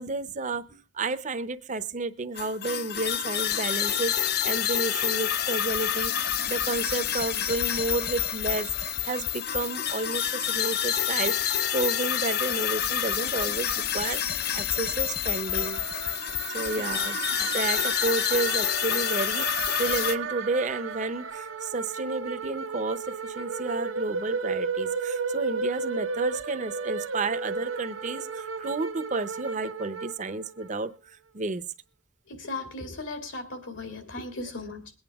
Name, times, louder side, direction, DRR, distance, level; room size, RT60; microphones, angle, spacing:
voice 1, 0.0-15.8 16.5-31.6, right 3 dB, 40° right, 12 dB, 0.7 m, -31 dB
sound 1, 2.4-20.1, left 10 dB, 50° left, 0.6 m, -28 dB
sound 2, 15.5-30.8, right 5 dB, 90° right, 1.0 m, -34 dB
voice 2, 32.3-34.9, left 2 dB, 80° left, 6 dB, 2.5 m, -37 dB
22.0 x 8.9 x 3.5 m, 0.31 s
head